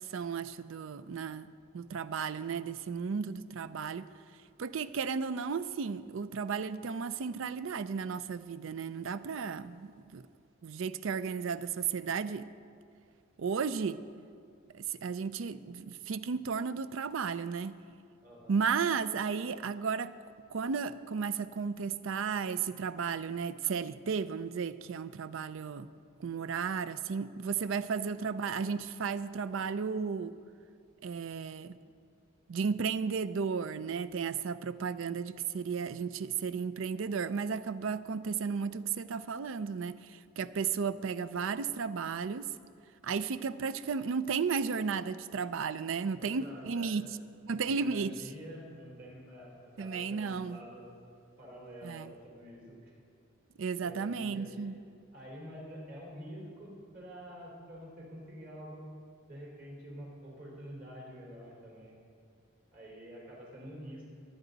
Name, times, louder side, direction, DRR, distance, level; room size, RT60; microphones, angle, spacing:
voice 1, 0.1-4.1 4.6-10.2 10.6-12.5 13.4-14.0 14.7-17.8 18.5-20.2 20.5-25.9 26.2-30.3 31.0-31.8 32.5-42.5 43.0-47.1 47.4-48.2 49.8-50.6 51.8-52.1 53.6-54.8, right 5 dB, 65° right, 15 dB, 0.4 m, -34 dB
voice 2, 18.2-18.5 28.0-28.1 46.2-47.0 47.5-51.0 51.4-52.9 53.8-54.7 55.1-58.9 59.3-62.0 62.7-64.1, equal, 45° right, -4 dB, 4.0 m, -47 dB
20.0 x 9.5 x 4.0 m, 2.3 s
head